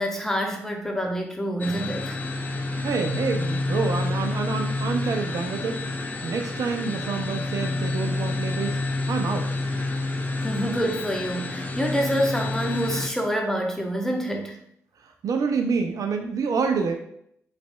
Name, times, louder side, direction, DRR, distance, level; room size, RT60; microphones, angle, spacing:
voice 1, 0.0-2.2 10.4-14.5, equal, 5° left, 1 dB, 0.9 m, -27 dB
sound 1, 1.6-13.1, left 2 dB, 25° left, 0.6 m, -29 dB
voice 2, 2.8-5.8 6.2-8.8 9.1-9.5 15.0-16.9, right 5 dB, 60° right, 4 dB, 0.4 m, -27 dB
3.9 x 3.1 x 2.2 m, 0.70 s
hypercardioid pair, 40°, 7 cm